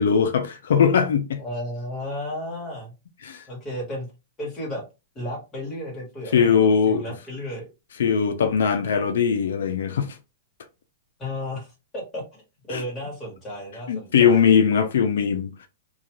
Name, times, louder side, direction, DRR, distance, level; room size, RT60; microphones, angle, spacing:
voice 1, 0.0-1.4 3.2-3.4 6.3-7.0 8.0-10.2 12.7-12.8 13.9-15.7, left 7 dB, 80° left, 0.4 m, -20 dB
voice 2, 1.4-2.9 3.5-4.1 4.4-4.8 5.1-7.7 11.2-12.4 12.7-14.5, left 1 dB, 15° left, 1.3 m, -33 dB
2.4 x 2.3 x 2.9 m
supercardioid pair, 155°, 0 cm